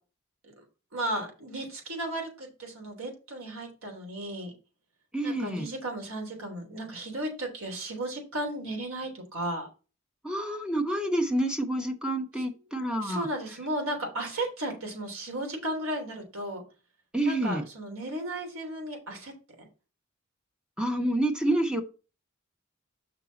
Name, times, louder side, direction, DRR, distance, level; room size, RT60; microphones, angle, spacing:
voice 1, 0.9-4.5 5.2-9.7 12.3-12.4 13.0-16.6 17.2-19.7, right 1 dB, 90° right, 3.3 m, -35 dB
voice 2, 5.1-5.7 10.2-13.3 17.1-17.6 20.8-21.8, right 1 dB, 5° right, 1.1 m, -28 dB
6.6 x 6.0 x 4.1 m
head